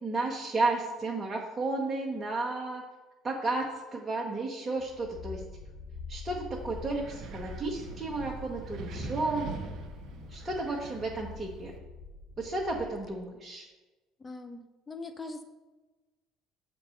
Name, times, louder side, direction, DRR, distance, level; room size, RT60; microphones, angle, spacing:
voice 1, 0.0-2.8 3.2-5.4 6.1-9.5 10.3-11.7 12.4-13.7, right 2 dB, 25° right, -2 dB, 1.3 m, -32 dB
sound 1, 4.8-13.2, left 4 dB, 45° left, 1.4 m, -45 dB
Wind, 6.5-11.8, right 4 dB, 50° right, 0.9 m, -43 dB
voice 2, 14.2-15.4, left 3 dB, 25° left, 7 dB, 1.0 m, -42 dB
7.5 x 4.4 x 6.4 m, 1.2 s
figure-of-eight pair, 55°, 0 cm